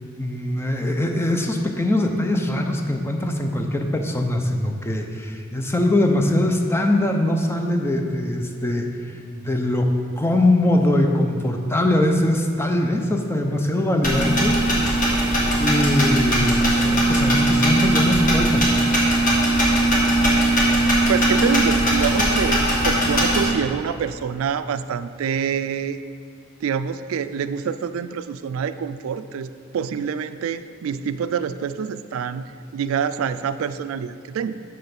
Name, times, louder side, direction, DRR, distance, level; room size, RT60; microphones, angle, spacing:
voice 1, 0.0-8.9 9.4-14.8 15.6-19.2, left 1 dB, 10° left, 3 dB, 0.6 m, -22 dB
sound 1, 14.0-23.5, right 1 dB, 40° left, 1.8 m, -19 dB
voice 2, 21.1-26.0 26.6-34.6, right 7 dB, 80° right, 12 dB, 0.3 m, -26 dB
6.7 x 5.5 x 5.9 m, 2.6 s
head